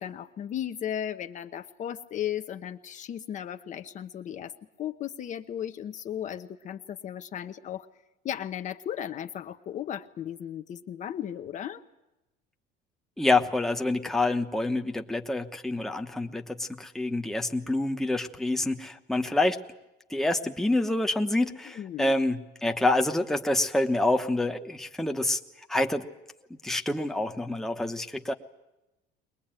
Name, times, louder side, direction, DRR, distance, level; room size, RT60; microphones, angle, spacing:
voice 1, 0.0-7.9 8.2-11.8 21.6-22.1, left 10 dB, 40° left, 7 dB, 0.9 m, -36 dB
voice 2, 13.2-19.6 20.1-25.4 25.7-26.1 26.6-28.3, left 2 dB, ahead, 3 dB, 1.1 m, -27 dB
22.5 x 20.0 x 9.0 m, 0.96 s
cardioid pair, 135°, 20 cm